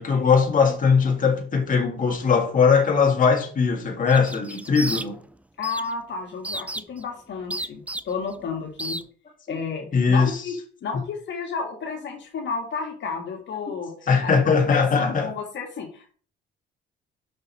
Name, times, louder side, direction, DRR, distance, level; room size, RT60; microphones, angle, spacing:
voice 1, 0.0-5.2 9.5-9.6 9.9-10.4 14.1-15.3, left 5 dB, 40° left, 1.9 m, -20 dB
sound 1, 4.1-5.3 5.6-5.9 6.4-7.0 7.5-8.3 8.8-9.0, right 1 dB, 5° right, 0.5 m, -32 dB
voice 2, 5.6-9.0 9.5-10.5 10.8-13.9 14.2-14.3 14.6-16.1, left 5 dB, 65° left, 1.8 m, -32 dB
5.9 x 5.4 x 4.2 m
cardioid pair, 90°, 20 cm